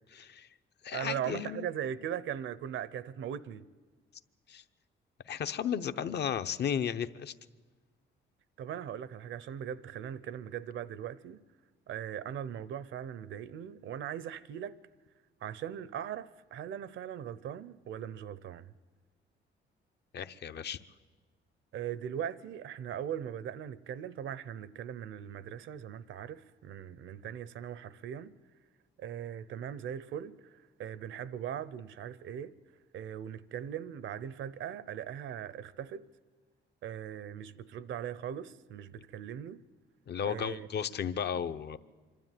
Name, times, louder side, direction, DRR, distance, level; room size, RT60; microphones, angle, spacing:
voice 1, 0.1-0.5 0.8-1.7 4.5-4.6 5.3-7.3 20.1-20.8 40.1-41.8, left 8 dB, 55° left, 0.8 m, -34 dB
voice 2, 0.9-3.6 8.6-11.4 11.9-14.7 15.4-18.7 21.7-28.3 29.0-32.5 32.9-36.0 36.8-39.6 40.2-41.0, right 9 dB, 75° right, 0.8 m, -39 dB
25.5 x 12.5 x 9.3 m
cardioid pair, 90°, 20 cm